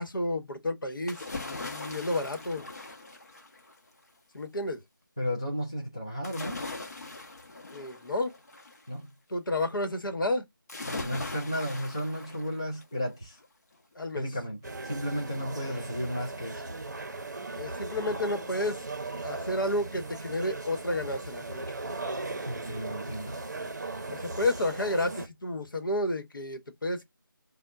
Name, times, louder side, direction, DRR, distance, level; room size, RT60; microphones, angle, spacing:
voice 1, 0.0-2.6 4.3-4.8 7.7-8.3 9.3-10.5 14.0-14.3 17.5-18.8 19.2-21.6 24.1-27.0, left 1 dB, 65° left, 1.0 m, -31 dB
sound 1, 1.1-3.9 6.2-8.9 10.7-13.0 13.4-13.5, left 2 dB, 45° left, 0.8 m, -40 dB
voice 2, 5.2-6.6 8.9-9.1 10.9-13.4 14.1-16.6 22.5-23.5, equal, 15° left, 0.4 m, -34 dB
sound 2, 14.6-25.3, right 2 dB, 50° right, 0.6 m, -38 dB
4.2 x 2.1 x 2.3 m
figure-of-eight pair, 170°, 12 cm